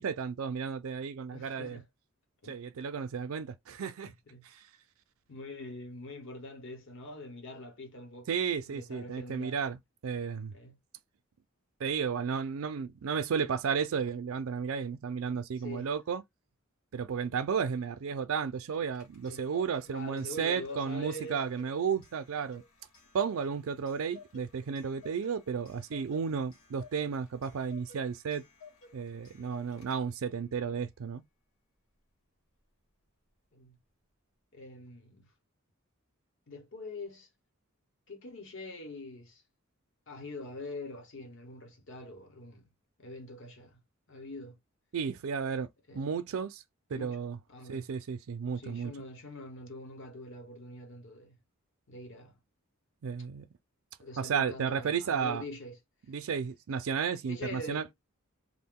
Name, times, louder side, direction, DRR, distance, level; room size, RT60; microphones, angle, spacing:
voice 1, 0.0-1.8 2.5-4.1 4.4-4.6 8.3-10.5 11.8-16.2 16.9-22.6 23.1-28.4 28.9-31.2 44.9-45.7 45.9-46.6 46.9-47.4 47.7-48.9 53.0-53.4 54.2-55.4 56.1-57.9, right 6 dB, 70° right, 0.4 m, -33 dB
voice 2, 1.3-1.9 2.4-2.6 4.1-4.5 5.3-9.6 10.5-10.8 15.6-15.9 19.3-19.5 19.9-21.4 29.4-29.5 33.5-33.8 34.5-35.3 36.5-37.3 38.1-39.4 40.1-42.7 43.0-43.8 44.1-44.6 45.9-46.1 46.9-47.2 47.5-47.9 48.6-51.4 51.9-52.4 54.0-55.8 57.2-57.9, left 2 dB, 65° left, 1.0 m, -44 dB
Clock, 18.7-30.3, left 5 dB, 85° left, 1.2 m, -56 dB
2.4 x 2.2 x 3.5 m
head